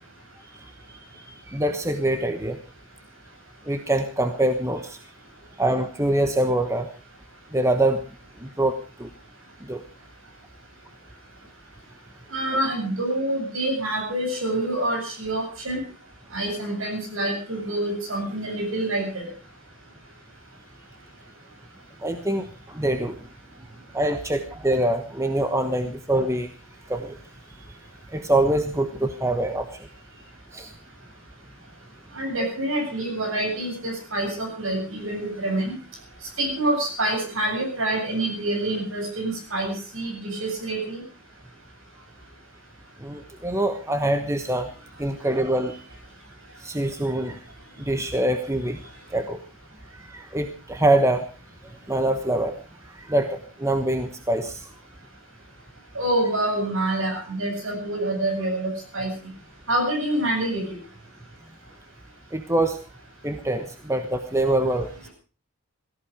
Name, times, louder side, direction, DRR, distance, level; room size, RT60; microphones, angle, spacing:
voice 1, 0.9-2.6 3.6-5.0 5.6-6.9 7.5-8.0 8.4-9.1 9.6-9.8 12.5-12.6 22.0-23.2 23.9-26.5 26.9-27.2 28.1-29.7 30.5-30.7 32.4-32.5 43.0-44.7 45.0-45.8 46.6-47.4 47.8-49.4 49.9-51.2 51.9-52.5 53.0-54.7 62.3-62.8 63.2-65.1, right 1 dB, 15° right, 7 dB, 1.2 m, -24 dB
voice 2, 12.3-15.8 16.3-19.3 32.1-35.7 36.4-41.0 55.9-59.1 59.7-60.8, right 1 dB, 60° right, 3 dB, 7.9 m, -26 dB
18.0 x 14.5 x 5.1 m, 0.37 s
head